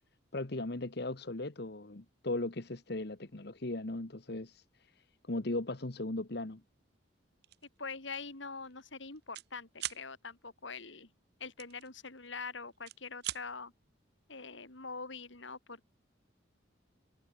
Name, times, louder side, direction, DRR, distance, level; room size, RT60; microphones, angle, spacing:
voice 1, 0.3-6.6, left 2 dB, 55° left, 1.3 m, -38 dB
sound 1, 7.4-7.7 8.1-8.3 8.6-9.5 9.8-10.0 11.6-12.4 12.7-13.4, right 15 dB, 55° right, 0.6 m, -41 dB
voice 2, 7.8-11.1 11.4-13.7 14.3-15.9, left 4 dB, 70° left, 3.3 m, -44 dB
head